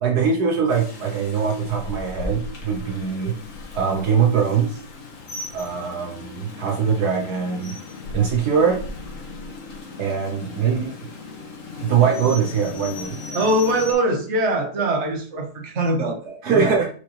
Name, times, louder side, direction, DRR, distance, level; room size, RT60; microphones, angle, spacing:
voice 1, 0.0-3.3 3.7-4.8 5.5-7.8 8.1-8.8 10.0-10.9 11.8-13.4 16.4-16.9, right 6 dB, 70° right, 1 dB, 1.5 m, -22 dB
Rain, 0.7-13.9, left 3 dB, 50° left, 1.5 m, -37 dB
voice 2, 13.3-16.8, right 1 dB, 45° right, 2 dB, 1.6 m, -22 dB
6.6 x 4.9 x 3.4 m, 0.43 s
omnidirectional pair, 1.8 m